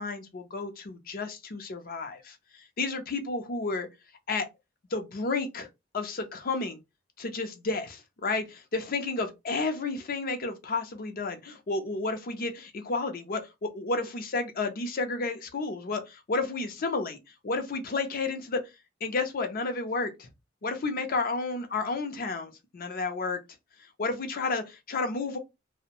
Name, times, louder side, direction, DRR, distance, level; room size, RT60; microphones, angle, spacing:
voice 1, 0.0-2.4 2.8-3.9 4.3-4.5 4.9-5.7 5.9-6.8 7.2-17.2 17.4-18.6 19.0-20.3 20.6-23.4 24.0-25.4, left 3 dB, 50° left, 0.5 m, -31 dB
2.5 x 2.1 x 2.8 m
head